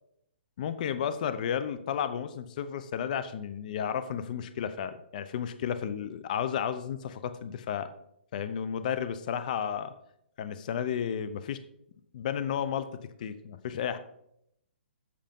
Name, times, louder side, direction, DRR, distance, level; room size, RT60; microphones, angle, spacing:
voice 1, 0.6-7.9 8.3-9.9 10.4-11.6 12.1-12.9 13.2-14.0, left 8 dB, 40° left, 12 dB, 0.6 m, -32 dB
7.7 x 6.6 x 5.2 m, 0.77 s
hypercardioid pair, 160°, 6 cm